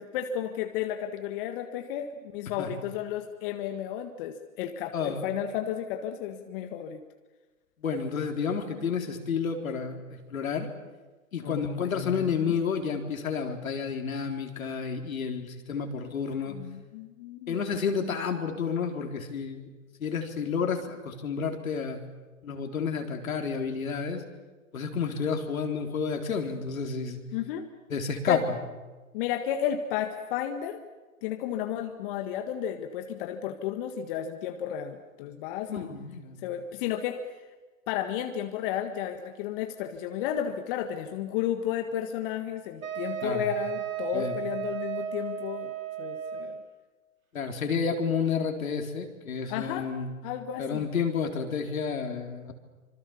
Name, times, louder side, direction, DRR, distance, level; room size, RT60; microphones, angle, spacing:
voice 1, 0.0-7.0 11.4-12.5 16.5-17.6 27.3-27.7 28.3-28.4 29.1-30.8 31.2-35.9 36.4-37.3 37.9-45.7 46.0-46.6 49.5-49.9 50.2-50.8, left 10 dB, 40° left, 6 dB, 1.8 m, -33 dB
voice 2, 4.9-5.3 7.8-10.7 11.3-16.6 17.5-19.7 20.0-22.0 22.4-24.2 24.7-27.2 27.9-28.6 35.7-36.4 43.2-43.5 44.1-44.4 47.3-50.1 50.6-52.5, left 6 dB, 75° left, 4 dB, 4.0 m, -30 dB
Wind instrument woodwind instrument, 42.8-46.7, right 8 dB, 75° right, 3.7 m, -34 dB
26.0 x 25.0 x 7.1 m, 1.2 s
hypercardioid pair, 130°, 42 cm